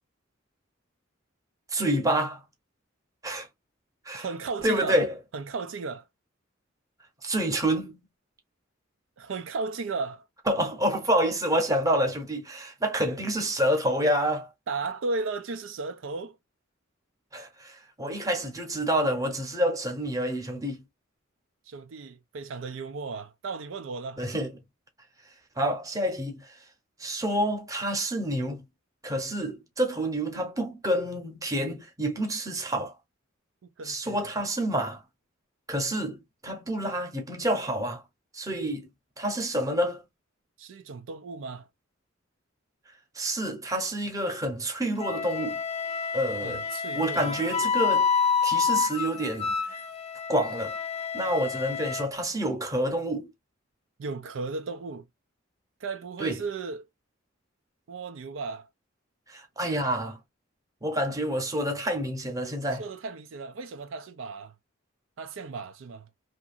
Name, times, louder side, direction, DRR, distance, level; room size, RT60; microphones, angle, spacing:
voice 1, 1.7-2.4 3.2-3.5 4.1-4.3 4.6-5.2 7.2-8.0 10.5-14.5 17.3-20.8 24.2-24.6 25.6-26.5 27.0-28.6 29.0-32.9 33.8-35.0 35.7-38.0 38.3-38.9 39.2-40.0 43.2-45.6 46.1-46.7 46.9-48.1 48.4-49.5 50.3-50.7 51.1-53.3 56.2-56.5 59.3-60.2 60.8-62.9, right 1 dB, 15° right, 0.9 m, -28 dB
voice 2, 4.1-5.0 5.3-6.0 9.2-10.2 14.7-16.4 21.7-24.2 33.8-34.3 40.6-41.7 46.4-47.3 54.0-55.0 55.8-56.9 57.9-58.7 62.8-64.5 65.2-66.1, right 4 dB, 75° right, 0.4 m, -35 dB
Wind instrument woodwind instrument, 45.0-52.1, left 6 dB, 30° left, 0.4 m, -28 dB
2.8 x 2.5 x 2.4 m
head